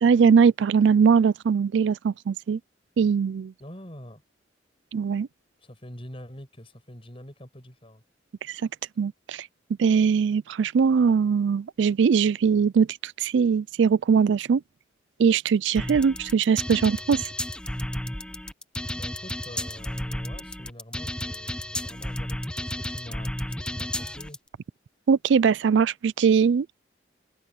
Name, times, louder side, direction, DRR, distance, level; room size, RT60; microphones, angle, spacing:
voice 1, 0.0-2.6 3.0-3.5 4.9-5.3 8.4-8.6 9.0-9.5 9.8-14.6 15.2-17.3 25.1-26.8, right 6 dB, 70° right, 0.4 m, -21 dB
voice 2, 3.6-4.2 5.6-8.0 19.0-24.4, equal, 30° left, 6.9 m, -45 dB
sound 1, 15.8-24.4, left 1 dB, 5° left, 0.8 m, -32 dB
head